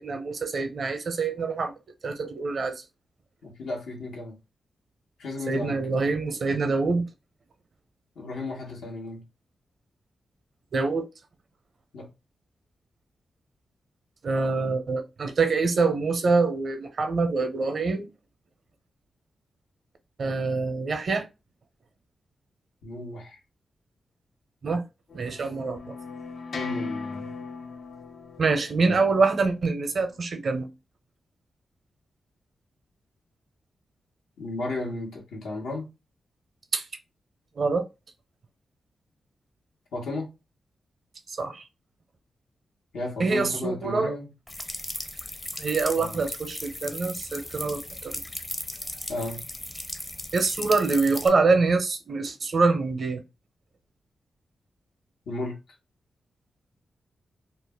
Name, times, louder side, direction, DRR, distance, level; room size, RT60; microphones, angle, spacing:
voice 1, 0.0-1.7 2.0-2.8 5.5-7.1 10.7-11.1 14.2-18.1 20.2-21.3 24.6-24.8 25.1-25.9 28.4-30.7 36.7-36.8 37.6-37.9 41.3-41.6 43.2-44.1 45.6-48.2 50.3-53.2, right 4 dB, 60° right, 0.6 m, -25 dB
voice 2, 3.4-4.4 5.2-6.1 8.2-9.2 11.9-12.1 22.8-23.4 26.5-27.3 28.8-29.0 34.4-35.9 39.9-40.3 42.9-44.3 46.0-46.2 49.1-49.4 55.3-55.6, left 2 dB, 85° left, 1.0 m, -34 dB
sound 1, 25.1-30.2, left 4 dB, 70° left, 0.4 m, -38 dB
sound 2, 44.5-51.3, left 1 dB, 25° left, 0.6 m, -36 dB
2.4 x 2.2 x 3.4 m
cardioid pair, 60°, 0 cm